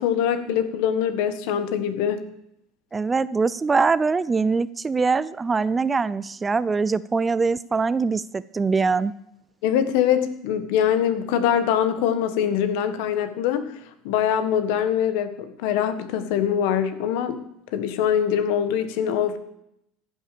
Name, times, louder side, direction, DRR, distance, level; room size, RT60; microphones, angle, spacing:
voice 1, 0.0-2.3 9.6-13.8 14.0-17.4 17.7-19.4, left 9 dB, 75° left, 11 dB, 1.5 m, -23 dB
voice 2, 2.9-9.1, right 4 dB, 20° right, 18 dB, 0.4 m, -23 dB
14.5 x 7.9 x 6.8 m, 0.78 s
supercardioid pair, 125°, 0 cm